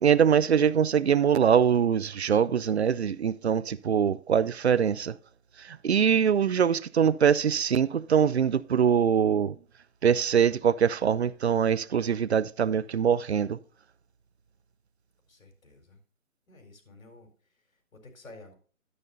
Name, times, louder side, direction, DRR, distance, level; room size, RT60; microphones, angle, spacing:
voice 1, 0.0-5.2 5.6-9.6 10.0-13.6, right 7 dB, 50° right, 0.6 m, -23 dB
voice 2, 15.3-16.0 16.5-18.5, left 2 dB, 65° left, 4.4 m, -52 dB
12.5 x 9.3 x 2.7 m
figure-of-eight pair, 150°, 43 cm